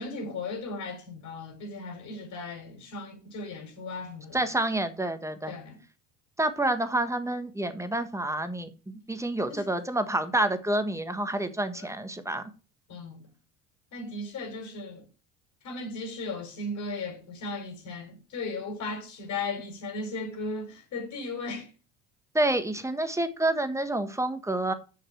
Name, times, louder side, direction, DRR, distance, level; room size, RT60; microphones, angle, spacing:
voice 1, 0.0-4.5 5.5-5.8 9.5-9.7 11.8-11.9 12.9-13.3 13.9-15.0 15.6-21.7, left 3 dB, 55° left, 4.5 m, -36 dB
voice 2, 4.3-5.5 6.4-12.4 22.3-24.7, right 1 dB, 10° right, 1.5 m, -28 dB
7.0 x 6.3 x 7.5 m
hypercardioid pair, 75°, 35 cm